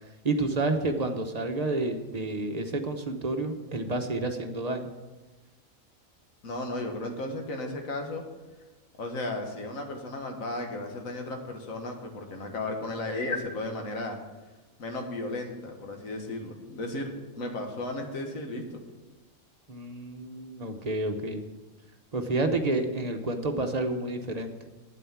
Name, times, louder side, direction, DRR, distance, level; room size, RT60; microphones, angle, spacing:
voice 1, 0.2-4.8 19.7-21.4 22.1-24.5, right 2 dB, 35° right, 5 dB, 0.9 m, -29 dB
voice 2, 6.4-8.2 9.0-14.2 14.8-18.6, left 2 dB, 80° left, 3 dB, 1.8 m, -34 dB
9.3 x 8.5 x 7.2 m, 1.2 s
omnidirectional pair, 1.4 m